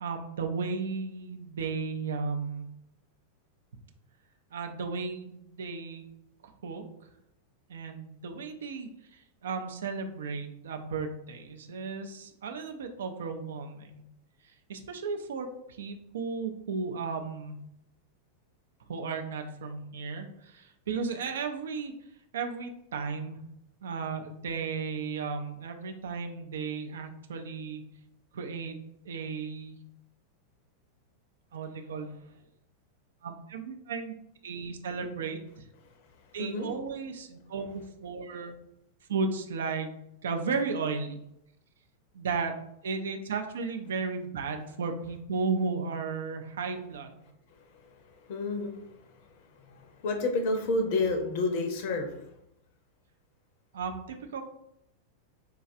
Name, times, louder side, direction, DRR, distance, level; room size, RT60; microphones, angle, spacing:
voice 1, 0.0-2.7 4.5-6.0 6.4-6.8 7.7-14.0 14.7-17.6 18.9-21.9 22.3-23.4 23.8-27.8 28.3-28.8 29.0-29.8 31.5-32.1 33.2-34.1 34.4-35.6 36.3-38.6 39.1-39.9 40.2-41.2 42.1-42.5 42.8-47.2 53.7-54.4, right 4 dB, 65° right, 5 dB, 0.4 m, -34 dB
voice 2, 36.4-36.7 48.3-48.8 49.7-52.1, left 2 dB, 50° left, 4 dB, 0.5 m, -29 dB
4.4 x 2.3 x 2.5 m, 0.81 s
figure-of-eight pair, 90°, 0 cm